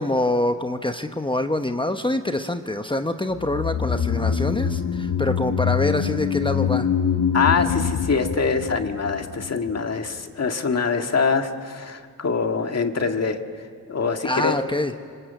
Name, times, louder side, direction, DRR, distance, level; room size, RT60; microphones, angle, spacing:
voice 1, 0.0-6.9 14.2-14.9, left 1 dB, 15° left, 6 dB, 1.0 m, -25 dB
sound 1, 3.4-9.8 10.0-10.1, left 7 dB, 85° left, 1.4 m, -25 dB
voice 2, 7.3-13.4 13.9-14.6, left 5 dB, 45° left, 5 dB, 1.9 m, -24 dB
28.0 x 25.5 x 8.3 m, 2.1 s
wide cardioid pair, 95°, 35 cm